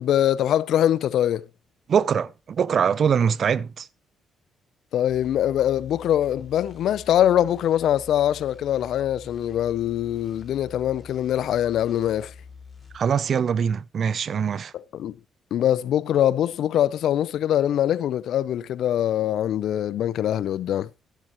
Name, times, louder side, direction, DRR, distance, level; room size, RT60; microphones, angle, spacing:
voice 1, 0.0-1.4 4.9-12.3 14.7-15.1 15.5-20.9, left 11 dB, 75° left, 0.6 m, -23 dB
voice 2, 1.9-3.9 12.9-14.7, right 7 dB, 55° right, 0.5 m, -23 dB
sound 1, 5.1-13.0, left 5 dB, 15° left, 5.7 m, -46 dB
13.0 x 12.0 x 3.0 m
cardioid pair, 90°, 0 cm